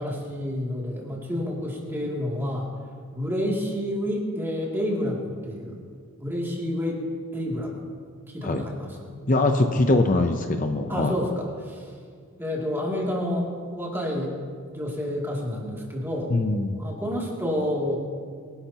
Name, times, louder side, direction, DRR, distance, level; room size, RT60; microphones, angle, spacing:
voice 1, 0.0-2.7 3.1-5.8 6.2-7.1 7.3-7.7 8.3-9.2 10.9-11.9 12.4-14.4 14.7-16.3 16.7-18.0, equal, 10° right, -3 dB, 2.6 m, -29 dB
voice 2, 9.3-11.1 16.3-16.8, left 2 dB, 40° left, 5 dB, 0.6 m, -22 dB
24.0 x 11.5 x 2.9 m, 2.1 s
head